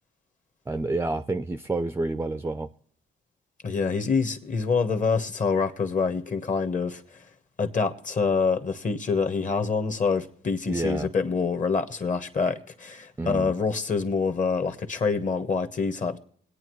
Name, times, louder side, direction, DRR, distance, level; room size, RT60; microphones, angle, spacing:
voice 1, 0.7-2.7 10.7-11.1 13.2-13.5, right 2 dB, 10° right, 0.5 m, -29 dB
voice 2, 3.6-7.0 7.6-16.2, left 5 dB, 40° left, 1.2 m, -26 dB
23.0 x 8.8 x 3.1 m
cardioid pair, 90°, 20 cm